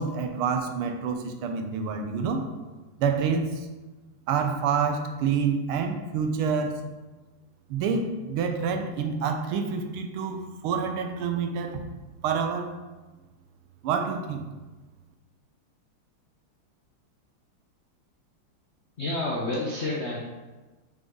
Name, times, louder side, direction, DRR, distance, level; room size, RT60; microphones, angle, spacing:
voice 1, 0.0-2.5 3.0-3.7 4.3-6.8 7.7-11.8 12.2-12.7 13.8-14.5, right 6 dB, 85° right, 6 dB, 1.6 m, -27 dB
voice 2, 19.0-20.2, left 2 dB, 65° left, -4 dB, 0.6 m, -29 dB
6.0 x 5.2 x 3.7 m, 1.2 s
omnidirectional pair, 2.4 m